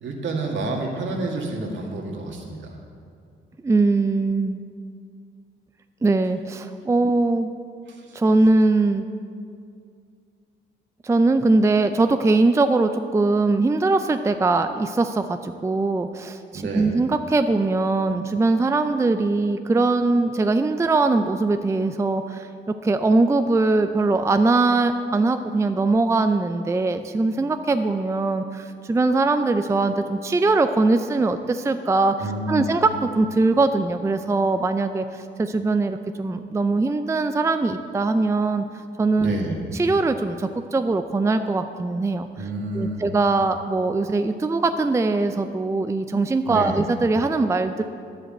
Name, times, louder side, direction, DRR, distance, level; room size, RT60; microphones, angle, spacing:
voice 1, 0.0-2.8 7.9-8.2 16.5-17.0 32.2-32.7 39.2-39.6 42.4-43.1 46.5-46.8, right 2 dB, 70° right, 0 dB, 2.1 m, -29 dB
voice 2, 3.6-4.6 6.0-7.5 8.1-9.1 11.0-32.2 32.5-32.9 33.1-38.6 39.0-39.3 39.8-42.3 42.7-47.8, right 3 dB, 15° right, 8 dB, 0.5 m, -21 dB
10.5 x 7.9 x 7.8 m, 2.3 s
cardioid pair, 90°, 20 cm